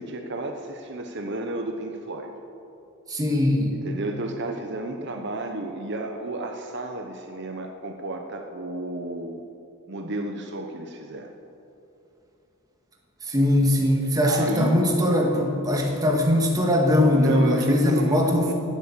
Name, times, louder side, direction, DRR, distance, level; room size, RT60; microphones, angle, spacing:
voice 1, 0.0-2.3 3.8-9.4 9.9-11.3 14.2-14.7 17.0-18.5, right 2 dB, 55° right, 4 dB, 1.0 m, -31 dB
voice 2, 3.1-3.8 13.3-18.5, left 1 dB, 15° right, 1 dB, 1.8 m, -21 dB
18.0 x 8.3 x 7.4 m, 2.8 s
head